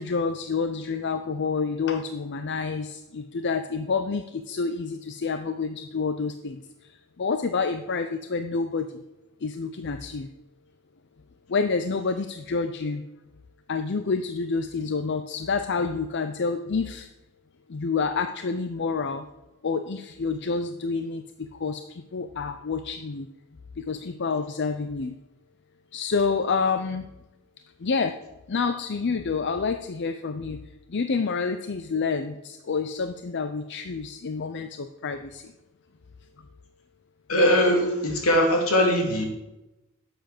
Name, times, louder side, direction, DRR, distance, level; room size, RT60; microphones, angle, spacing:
voice 1, 0.0-6.9 7.2-9.0 9.4-10.3 11.5-13.0 13.7-17.1 17.7-19.2 19.6-23.3 23.8-25.1 25.9-27.1 27.8-28.2 28.5-30.6 30.9-35.5, left 4 dB, 50° left, 8 dB, 0.6 m, -28 dB
voice 2, 37.3-39.3, equal, 75° left, 1 dB, 2.7 m, -21 dB
11.5 x 7.9 x 6.0 m, 1.0 s
head